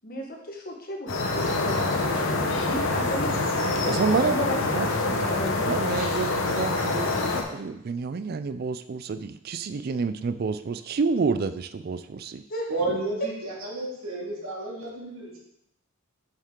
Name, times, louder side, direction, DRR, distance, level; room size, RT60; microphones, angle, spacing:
voice 1, 0.0-5.6 12.5-12.9, equal, 45° left, 1 dB, 1.2 m, -34 dB
sound 1, 1.1-7.4, left 2 dB, 65° left, 0.9 m, -26 dB
voice 2, 3.9-5.2 5.5-12.4, right 4 dB, 45° right, 11 dB, 0.4 m, -29 dB
voice 3, 12.7-15.4, right 2 dB, 80° right, -4 dB, 2.3 m, -31 dB
7.1 x 5.4 x 3.7 m, 0.79 s
head